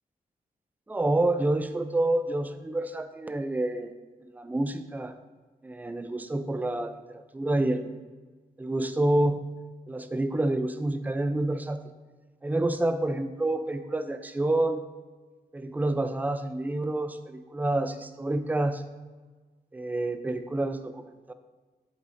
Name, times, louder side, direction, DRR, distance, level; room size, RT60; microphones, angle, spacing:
voice 1, 0.9-3.9 4.3-5.1 5.6-7.9 8.6-9.5 9.9-11.8 12.4-14.9 15.5-18.8 19.7-21.3, right 2 dB, 10° right, 9 dB, 0.4 m, -28 dB
8.0 x 3.7 x 4.1 m, 1.3 s
wide cardioid pair, 150°, 16 cm